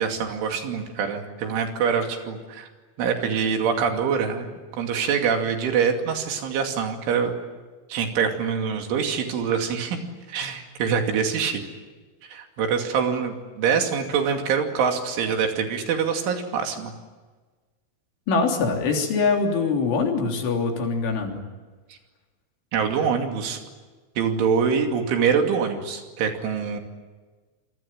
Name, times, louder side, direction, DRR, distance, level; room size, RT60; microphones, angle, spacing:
voice 1, 0.0-2.7 3.0-4.5 4.7-7.4 7.9-11.6 12.2-16.9 21.9-22.0 22.7-23.6 24.2-26.8, right 6 dB, 75° right, 4 dB, 5.0 m, -25 dB
voice 2, 18.3-21.4, left 4 dB, 70° left, 2 dB, 5.7 m, -23 dB
27.0 x 22.5 x 9.0 m, 1.3 s
omnidirectional pair, 5.8 m